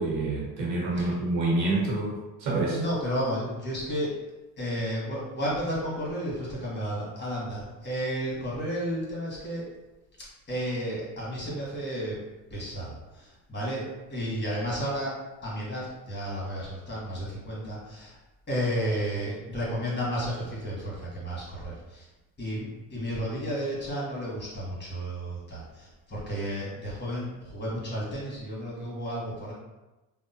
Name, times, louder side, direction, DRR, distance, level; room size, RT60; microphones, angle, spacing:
voice 1, 0.0-2.8, right 2 dB, 90° right, -4 dB, 1.0 m, -27 dB
voice 2, 2.7-4.2 4.6-9.6 10.5-12.2 12.5-15.1 15.4-18.2 18.5-22.1 22.4-29.5, equal, 25° left, -5 dB, 1.3 m, -32 dB
2.7 x 2.1 x 2.7 m, 1.0 s
supercardioid pair, 80°, 39 cm